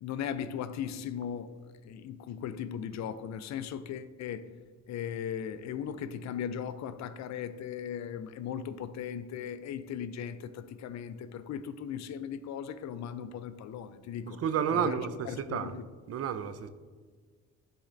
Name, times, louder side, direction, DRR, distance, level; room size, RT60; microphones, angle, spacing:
voice 1, 0.0-1.6 1.8-4.5 4.9-14.4 14.7-15.8, left 8 dB, 65° left, 0.5 m, -38 dB
voice 2, 14.3-15.8 16.1-16.7, right 8 dB, 50° right, 0.5 m, -31 dB
9.9 x 4.2 x 2.6 m
cardioid pair, 90°, 30 cm